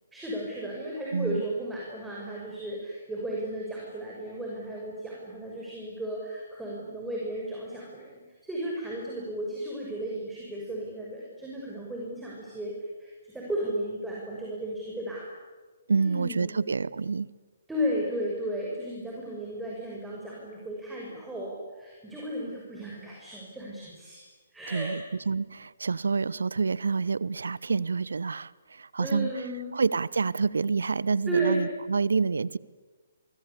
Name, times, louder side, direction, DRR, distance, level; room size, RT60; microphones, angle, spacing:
voice 1, 0.1-12.7 13.0-15.3 15.9-16.5 17.7-24.2 24.5-25.1 29.0-29.7 31.3-31.5, right 1 dB, 5° right, 6.3 m, -34 dB
voice 2, 15.9-17.3 24.7-29.4 29.7-32.6, right 4 dB, 65° right, 0.8 m, -28 dB
29.5 x 24.0 x 8.4 m
figure-of-eight pair, 130°, 0 cm